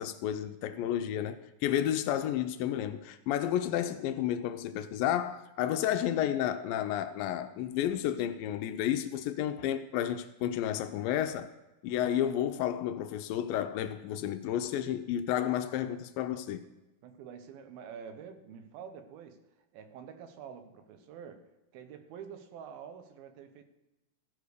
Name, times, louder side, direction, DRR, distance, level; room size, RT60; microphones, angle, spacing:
voice 1, 0.0-11.5 11.8-16.6, left 11 dB, 80° left, 2.2 m, -31 dB
voice 2, 17.0-19.5 19.7-23.6, right 7 dB, 85° right, 2.7 m, -47 dB
14.5 x 4.9 x 6.5 m
omnidirectional pair, 4.2 m